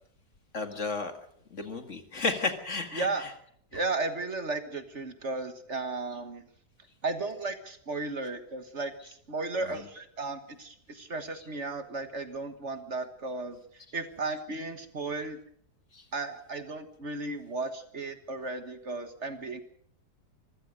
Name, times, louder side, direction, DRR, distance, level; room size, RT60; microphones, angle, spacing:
voice 1, 0.5-1.1 1.5-3.3 9.6-9.8 15.9-16.0, left 3 dB, 50° left, 7 dB, 2.3 m, -33 dB
voice 2, 2.9-3.3 3.7-6.4 7.0-13.6 13.9-15.4 16.1-19.6, right 3 dB, 45° right, 9 dB, 1.7 m, -34 dB
25.5 x 15.5 x 6.5 m, 0.64 s
omnidirectional pair, 1.7 m